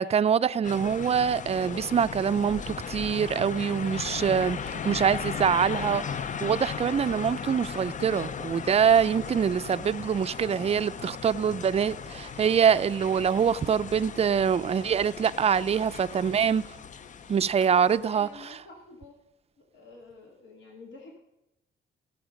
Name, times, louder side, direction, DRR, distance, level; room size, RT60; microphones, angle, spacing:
voice 1, 0.0-16.6 17.3-18.3, right 7 dB, 30° right, 0.5 m, -24 dB
sound 1, 0.6-18.1, left 7 dB, 40° left, 0.6 m, -37 dB
voice 2, 17.8-19.1 19.6-21.2, left 3 dB, 70° left, 2.4 m, -48 dB
17.5 x 7.1 x 5.2 m
cardioid pair, 90°, 20 cm